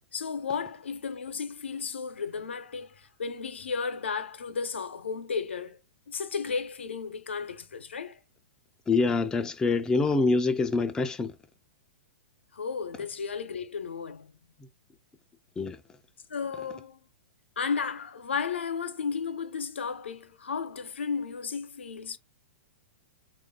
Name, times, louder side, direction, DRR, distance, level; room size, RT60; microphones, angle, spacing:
voice 1, 0.1-2.9 3.2-5.8 6.1-8.1 12.5-14.3 16.3-17.0 17.6-22.2, left 5 dB, 85° left, 0.6 m, -33 dB
voice 2, 8.9-11.3 15.6-15.8, left 3 dB, 10° left, 0.3 m, -25 dB
3.2 x 2.4 x 3.6 m
hypercardioid pair, 125°, 6 cm